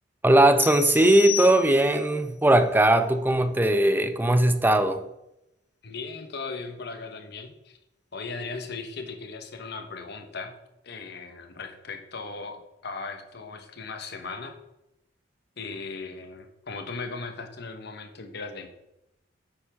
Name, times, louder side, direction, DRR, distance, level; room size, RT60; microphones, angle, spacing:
voice 1, 0.2-5.0, right 1 dB, 10° right, 0.6 m, -19 dB
sound 1, 0.6-2.1, left 13 dB, 90° left, 0.8 m, -33 dB
voice 2, 5.8-7.8 8.1-10.6 10.8-14.6 15.6-18.7, left 4 dB, 60° left, 1.2 m, -37 dB
9.8 x 7.9 x 3.6 m
head